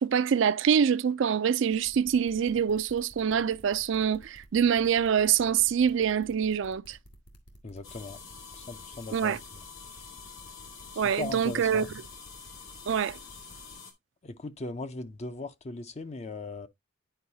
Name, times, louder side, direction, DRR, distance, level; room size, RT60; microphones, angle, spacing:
voice 1, 0.0-7.0 9.1-9.4 11.0-11.9 12.9-13.2, right 7 dB, 65° right, 0.4 m, -25 dB
sound 1, 1.7-13.7, equal, 50° left, 1.9 m, -53 dB
voice 2, 7.6-8.2 8.5-9.4 10.9-11.9 14.2-16.7, left 3 dB, 30° left, 0.5 m, -38 dB
sound 2, 7.8-13.9, left 5 dB, 75° left, 2.0 m, -47 dB
10.0 x 4.7 x 2.7 m
head